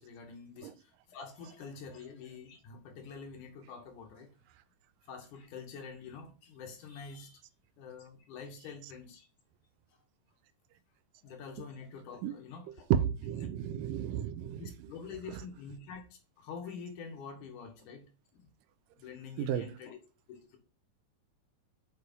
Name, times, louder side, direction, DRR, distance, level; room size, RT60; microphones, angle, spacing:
voice 1, 0.0-4.3 5.1-7.4 7.8-9.3 11.2-12.9 13.4-13.5 14.6-18.1 18.3-18.5 19.0-20.0 20.3-20.6, left 5 dB, 65° left, 2.7 m, -46 dB
voice 2, 12.7-14.9 15.3-15.4 19.4-19.7, right 10 dB, 80° right, 2.2 m, -33 dB
8.4 x 4.7 x 5.3 m
omnidirectional pair, 4.0 m